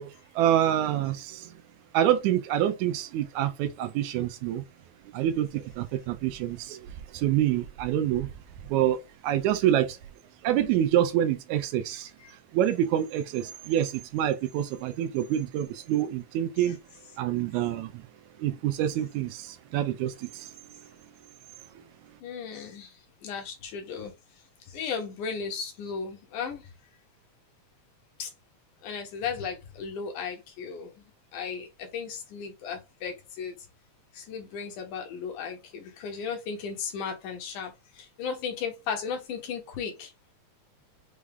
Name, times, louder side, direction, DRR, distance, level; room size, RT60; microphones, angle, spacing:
voice 1, 0.0-1.5 1.9-4.6 5.1-6.9 7.1-8.3 8.7-10.0 10.4-12.1 12.5-16.8 17.2-18.1 18.4-20.5, right 11 dB, 80° right, 1.9 m, -27 dB
voice 2, 22.2-24.2 24.7-26.7 28.2-28.3 28.8-31.0 31.3-33.6 34.1-40.1, left 6 dB, 90° left, 2.8 m, -35 dB
6.3 x 2.3 x 3.5 m
omnidirectional pair, 3.5 m